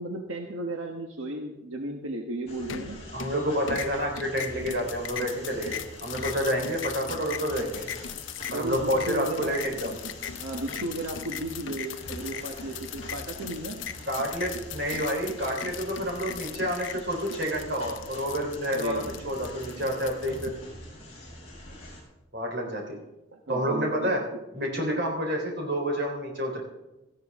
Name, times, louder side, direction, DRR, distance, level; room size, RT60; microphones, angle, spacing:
voice 1, 0.0-3.0 8.5-9.5 10.4-13.8 18.7-19.2 23.3-24.3, right 1 dB, 85° right, 2 dB, 1.3 m, -34 dB
sound 1, 2.5-22.0, left 1 dB, 30° left, 6.2 m, -44 dB
sound 2, 2.7-3.4 3.7-20.5, left 8 dB, 65° left, 0.8 m, -39 dB
voice 2, 3.1-7.9 8.5-10.0 14.1-20.6 22.3-23.0 23.5-24.2 24.5-26.6, equal, 50° right, 0 dB, 3.7 m, -29 dB
17.5 x 14.0 x 3.6 m, 1.0 s
head